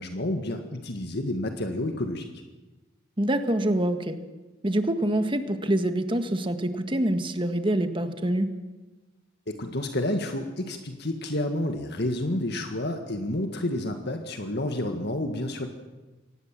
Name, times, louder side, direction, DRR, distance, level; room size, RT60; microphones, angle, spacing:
voice 1, 0.0-2.3 9.5-15.7, left 1 dB, 60° left, 5 dB, 1.8 m, -30 dB
voice 2, 3.2-4.2 4.6-8.6, right 1 dB, 25° right, 8 dB, 1.6 m, -26 dB
24.5 x 18.5 x 7.6 m, 1.2 s
head